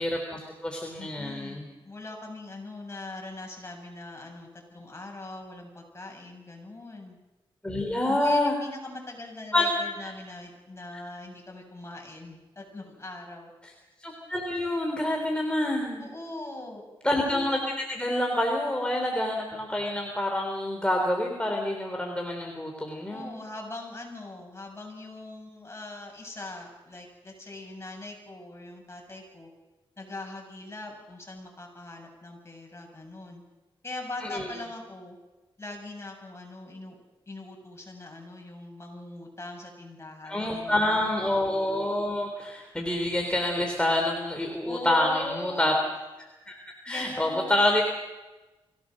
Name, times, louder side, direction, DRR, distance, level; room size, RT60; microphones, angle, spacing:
voice 1, 0.0-1.6 7.6-8.6 9.5-10.1 14.0-16.0 17.0-23.3 34.2-34.5 40.3-45.7 46.2-46.6 46.8-47.8, left 1 dB, 10° left, 1 dB, 3.6 m, -27 dB
voice 2, 1.0-7.2 8.2-13.5 16.0-16.8 23.1-29.5 30.0-33.4 33.8-35.2 35.6-37.0 37.3-41.1 44.6-45.7 46.9-47.6, left 2 dB, 30° left, 1 dB, 7.7 m, -41 dB
25.0 x 17.5 x 6.6 m, 1.1 s
cardioid pair, 70°, 10 cm